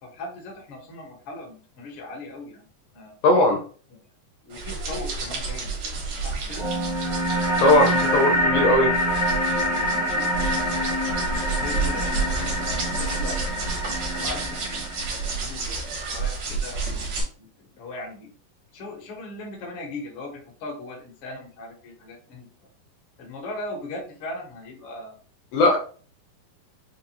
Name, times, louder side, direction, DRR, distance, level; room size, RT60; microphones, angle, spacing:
voice 1, 0.0-2.6 2.9-3.1 3.9-4.0 4.4-5.7 6.2-6.7 7.9-8.2 9.0-9.2 9.8-10.8 11.4-13.7 14.2-16.9 17.4-18.3 18.7-22.5 23.2-25.2, left 2 dB, 55° left, -1 dB, 1.6 m, -39 dB
voice 2, 3.2-3.6 7.6-8.9 25.5-25.8, left 1 dB, 75° left, 1 dB, 2.2 m, -18 dB
sound 1, 4.5-17.2, right 4 dB, 65° right, 1.4 m, -30 dB
sound 2, 6.6-15.6, equal, 15° left, 0.5 m, -26 dB
5.8 x 2.5 x 2.9 m, 0.41 s
omnidirectional pair, 4.2 m